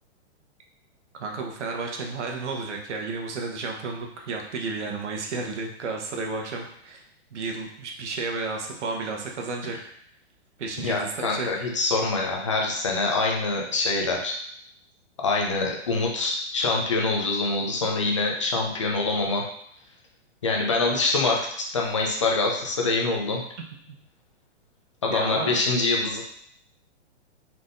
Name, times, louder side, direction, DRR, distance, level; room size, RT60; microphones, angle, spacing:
voice 1, 1.1-7.0 7.3-9.8 10.6-11.6 25.1-25.6, right 3 dB, 80° right, 1 dB, 1.0 m, -32 dB
voice 2, 10.8-14.4 15.2-19.4 20.4-21.4 21.7-23.4 25.0-26.2, left 3 dB, 30° left, -1 dB, 0.4 m, -25 dB
4.1 x 3.4 x 2.6 m, 0.68 s
hypercardioid pair, 170°, 35 cm